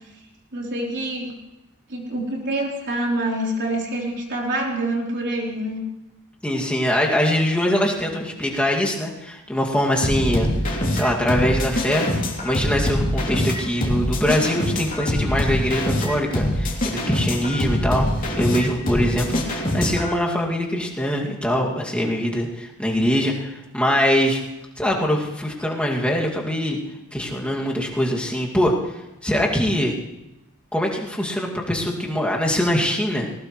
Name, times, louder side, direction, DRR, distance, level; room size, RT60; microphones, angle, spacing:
voice 1, 0.5-1.3 1.9-5.8, right 1 dB, 55° right, -2 dB, 3.8 m, -26 dB
voice 2, 6.4-18.1 18.4-24.4 24.8-26.8 27.1-28.7 29.2-29.9 30.7-33.3, equal, 5° left, -2 dB, 2.3 m, -23 dB
sound 1, 10.0-20.1, left 1 dB, 40° left, 3.1 m, -24 dB
19.5 x 19.0 x 3.2 m, 0.95 s
head